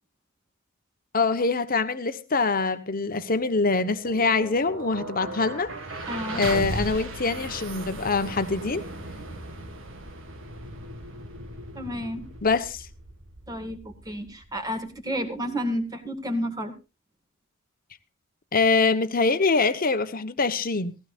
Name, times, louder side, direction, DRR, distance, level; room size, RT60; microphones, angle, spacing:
voice 1, 1.1-5.7 6.3-8.8 12.4-12.8 18.5-21.0, left 4 dB, 40° left, 1.1 m, -24 dB
sound 1, 3.4-15.5, right 2 dB, 65° right, 1.9 m, -37 dB
voice 2, 6.1-6.4 11.8-12.3 13.5-16.7, equal, 20° right, 1.9 m, -31 dB
17.0 x 16.0 x 2.5 m
head